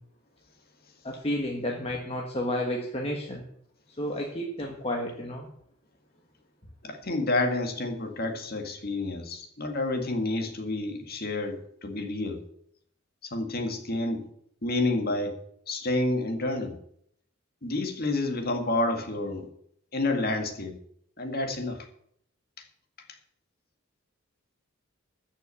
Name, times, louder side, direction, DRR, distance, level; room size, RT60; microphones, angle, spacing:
voice 1, 1.0-3.4 4.0-5.5, left 1 dB, 30° left, 1 dB, 1.5 m, -31 dB
voice 2, 6.8-12.4 13.2-14.3 14.6-15.3 15.7-16.8 17.6-19.5 19.9-20.8 21.2-21.9, left 2 dB, 50° left, 5 dB, 1.9 m, -29 dB
14.0 x 6.4 x 8.4 m, 0.70 s
head